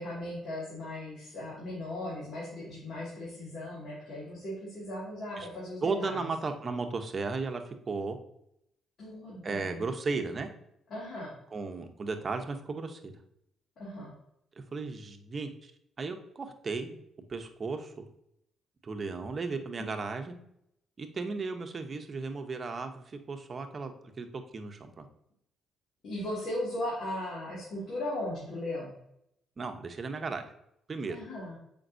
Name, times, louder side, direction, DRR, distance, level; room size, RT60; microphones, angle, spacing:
voice 1, 0.0-6.2 9.0-9.8 10.9-11.3 13.8-14.1 19.8-19.9 26.0-28.9 31.1-31.6, left 1 dB, 60° left, -6 dB, 2.1 m, -37 dB
voice 2, 5.8-8.2 9.4-10.5 11.5-13.1 14.6-15.7 16.0-16.9 17.3-18.0 18.8-20.4 21.0-25.1 29.6-30.5 30.9-31.2, right 4 dB, 40° right, 6 dB, 0.8 m, -35 dB
7.4 x 5.2 x 2.6 m, 0.76 s
cardioid pair, 90°, 0 cm